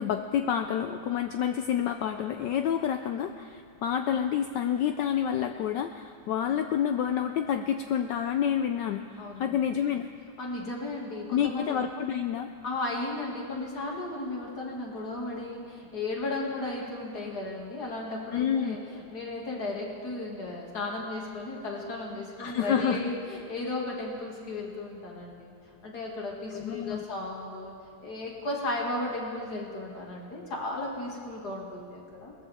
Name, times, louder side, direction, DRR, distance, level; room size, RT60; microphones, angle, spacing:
voice 1, 0.0-9.0 9.4-10.1 11.3-12.5 18.3-18.8 22.4-23.1 26.5-27.0, left 9 dB, 80° left, 7 dB, 0.9 m, -28 dB
voice 2, 9.2-9.6 10.4-11.8 12.6-25.5 25.8-27.7 28.0-32.3, left 2 dB, 45° left, -2 dB, 2.6 m, -35 dB
20.0 x 14.0 x 3.5 m, 2.5 s
omnidirectional pair, 2.4 m